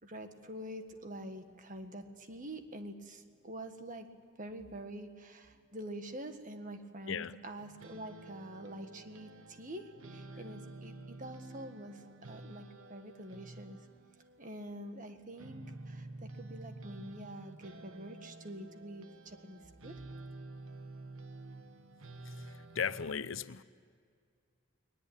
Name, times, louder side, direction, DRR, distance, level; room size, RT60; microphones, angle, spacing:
voice 1, 0.0-4.1 4.4-13.8 14.4-20.0, right 1 dB, 40° right, 1.7 m, -46 dB
sound 1, 7.6-23.1, right 2 dB, 85° right, 1.3 m, -50 dB
voice 2, 22.2-23.6, left 6 dB, 70° left, 0.7 m, -37 dB
21.0 x 20.0 x 8.8 m
head